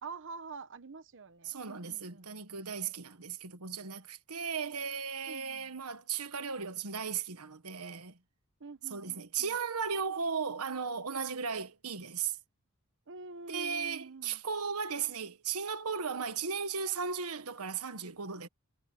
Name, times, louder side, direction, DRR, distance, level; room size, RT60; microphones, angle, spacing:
voice 1, 0.0-2.3 5.3-5.7 8.6-9.5 13.1-14.4, right 4 dB, 60° right, 1.0 m, -46 dB
voice 2, 1.4-8.2 8.9-12.4 13.5-18.5, right 6 dB, 85° right, 1.5 m, -36 dB
head